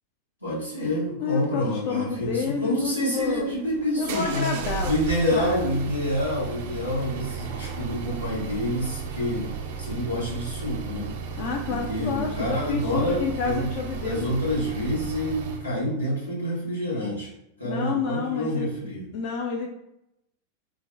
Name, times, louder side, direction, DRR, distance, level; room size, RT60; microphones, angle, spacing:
voice 1, 0.4-4.5 4.8-9.5 9.8-11.1 11.7-13.7 14.0-17.3 17.6-19.0, equal, 85° left, -7 dB, 1.1 m, -27 dB
voice 2, 1.2-3.5 4.0-5.9 11.4-14.3 17.6-18.7 19.1-19.7, left 5 dB, 45° left, 1 dB, 0.3 m, -29 dB
sound 1, 3.1-15.7, right 5 dB, 50° right, 0.3 m, -35 dB
2.5 x 2.1 x 3.7 m, 0.83 s
figure-of-eight pair, 90°, 0 cm